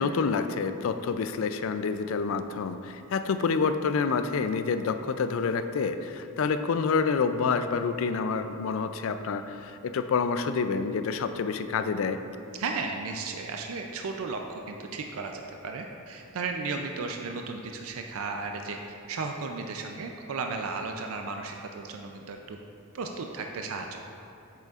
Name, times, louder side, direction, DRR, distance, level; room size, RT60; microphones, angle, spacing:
voice 1, 0.0-12.2, left 5 dB, 65° left, 9 dB, 0.3 m, -28 dB
voice 2, 12.6-18.8 19.1-22.6 22.9-24.0, right 4 dB, 75° right, 3 dB, 0.4 m, -34 dB
8.1 x 6.6 x 2.4 m, 2.6 s
head